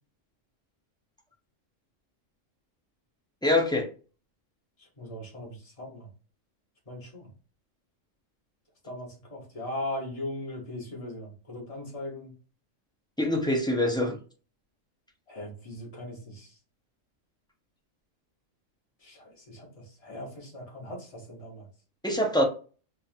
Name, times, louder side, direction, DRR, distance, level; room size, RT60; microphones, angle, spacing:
voice 1, 3.4-3.9 13.2-14.2 22.0-22.4, left 1 dB, 5° left, 0.3 m, -24 dB
voice 2, 5.0-6.1 6.9-7.3 8.8-12.3 15.3-16.5 19.0-21.7, left 1 dB, 30° left, 1.4 m, -39 dB
5.5 x 2.5 x 2.7 m
omnidirectional pair, 1.3 m